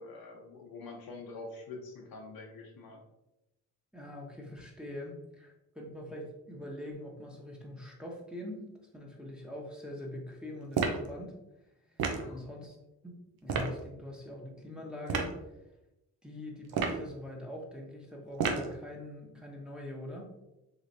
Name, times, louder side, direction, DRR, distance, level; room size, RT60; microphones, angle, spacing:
voice 1, 0.0-3.0 12.0-12.5, left 3 dB, 60° left, 0 dB, 0.9 m, -46 dB
voice 2, 3.9-11.4 11.8-12.8 13.0-15.3 16.2-20.3, left 1 dB, ahead, -2 dB, 1.0 m, -43 dB
sound 1, 10.7-11.1 12.0-12.3 13.5-13.7 15.1-15.3 16.7-17.1 18.4-18.7, right 5 dB, 65° right, 0.7 m, -30 dB
3.2 x 3.0 x 2.6 m, 0.93 s
hypercardioid pair, 45°, 40 cm